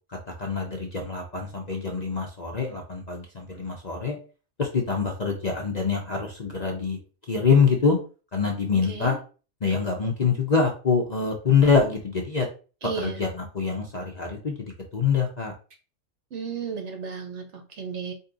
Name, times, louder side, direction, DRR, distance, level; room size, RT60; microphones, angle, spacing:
voice 1, 0.4-4.2 4.6-7.0 7.3-8.0 8.3-9.2 9.6-12.5 13.0-15.5, left 5 dB, 40° left, 1 dB, 0.7 m, -25 dB
voice 2, 8.7-9.2 12.8-13.2 16.3-18.1, right 6 dB, 60° right, 4 dB, 1.3 m, -34 dB
4.5 x 2.8 x 3.8 m, 0.35 s
omnidirectional pair, 1.4 m